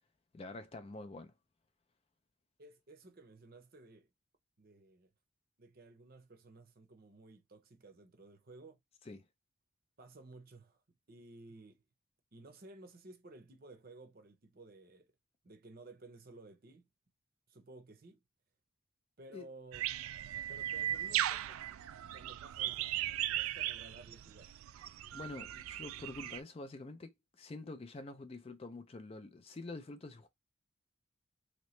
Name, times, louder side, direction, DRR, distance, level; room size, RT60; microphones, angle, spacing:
voice 1, 0.3-1.3 9.0-9.2 19.3-19.5 25.1-30.3, left 2 dB, 25° left, 0.4 m, -47 dB
voice 2, 2.6-4.1 4.6-5.1 5.6-8.8 10.0-10.8 11.1-11.8 12.3-15.1 15.4-16.9 17.5-18.2 19.2-19.8 20.5-21.6 22.1-22.9 23.3-24.5 25.5-25.6, right 2 dB, 45° right, 0.7 m, -55 dB
sound 1, 19.7-26.4, right 12 dB, 80° right, 0.3 m, -38 dB
3.1 x 2.9 x 3.1 m
head